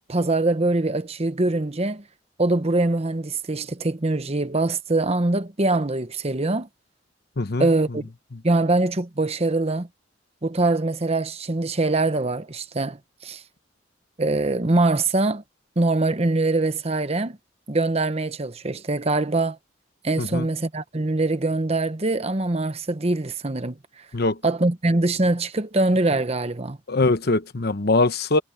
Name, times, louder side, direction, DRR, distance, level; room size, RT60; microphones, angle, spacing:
voice 1, 0.1-2.0 2.4-6.7 7.6-8.0 8.4-9.9 10.4-13.4 14.2-15.4 15.8-17.4 17.7-19.6 20.0-23.8 24.4-26.8, right 2 dB, 35° right, 1.0 m, -23 dB
voice 2, 7.4-7.7 20.2-20.5 24.1-24.4 26.9-28.4, left 3 dB, 55° left, 1.0 m, -22 dB
head